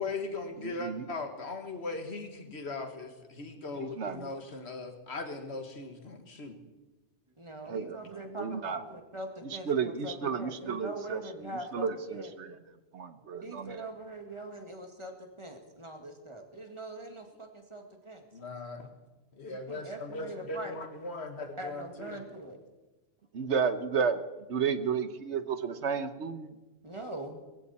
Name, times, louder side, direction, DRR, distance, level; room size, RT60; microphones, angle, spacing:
voice 1, 0.0-6.6 18.3-18.9 19.3-22.2, left 3 dB, 65° left, 6 dB, 1.8 m, -39 dB
voice 2, 0.6-1.1 3.8-4.3 7.7-8.8 9.4-12.6 12.9-13.9 23.3-24.2 24.5-26.5, right 6 dB, 75° right, 11 dB, 1.2 m, -32 dB
voice 3, 7.4-12.3 13.4-18.3 19.5-20.8 21.4-22.6 26.8-27.4, right 1 dB, 25° right, 4 dB, 2.0 m, -42 dB
20.0 x 15.5 x 4.2 m, 1.1 s
omnidirectional pair, 1.2 m